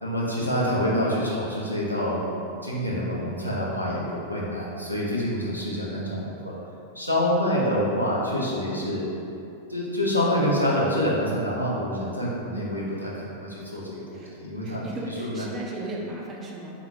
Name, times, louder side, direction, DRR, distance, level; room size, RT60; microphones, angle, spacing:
voice 1, 0.0-6.6 6.9-9.0 9.7-14.9 15.2-15.4, equal, 90° left, -6 dB, 0.6 m, -27 dB
voice 2, 14.1-16.7, right 2 dB, 25° right, -2 dB, 0.5 m, -36 dB
3.6 x 2.8 x 2.4 m, 2.7 s
figure-of-eight pair, 90°, 0 cm